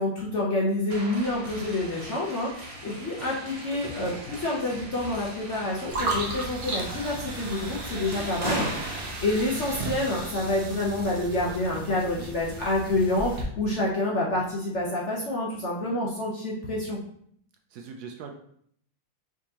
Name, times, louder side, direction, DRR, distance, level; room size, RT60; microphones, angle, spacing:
voice 1, 0.0-17.0, left 2 dB, 55° left, -4 dB, 0.8 m, -28 dB
sound 1, 0.9-9.1, right 1 dB, 35° right, 1.2 m, -39 dB
voice 2, 3.8-4.4 11.4-12.3 17.7-18.3, right 6 dB, 75° right, 3 dB, 0.9 m, -41 dB
sound 2, 5.9-13.4, right 2 dB, 55° right, 0.6 m, -35 dB
4.8 x 3.6 x 2.8 m, 0.66 s
omnidirectional pair, 2.1 m